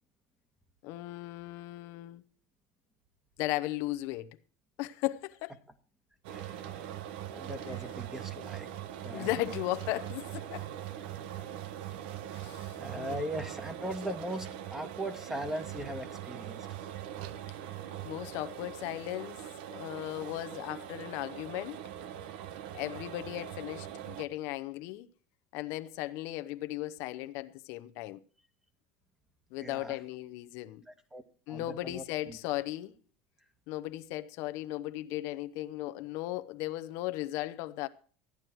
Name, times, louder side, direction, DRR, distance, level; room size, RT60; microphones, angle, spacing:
voice 1, 0.8-2.2 3.4-4.3 4.8-5.6 7.7-7.8 9.1-10.7 12.3-13.3 18.0-19.4 19.7-21.8 22.7-25.1 25.5-28.2 29.5-30.8 31.5-32.9 33.7-37.9, left 16 dB, 65° left, 0.8 m, -36 dB
sound 1, 6.2-24.2, right 11 dB, 80° right, 0.9 m, -42 dB
voice 2, 6.3-6.7 7.3-8.7 9.0-9.3 12.8-16.7 29.6-30.0 30.9-31.2 31.5-32.4, right 1 dB, 10° right, 1.5 m, -39 dB
14.0 x 9.6 x 4.5 m
supercardioid pair, 125°, 5 cm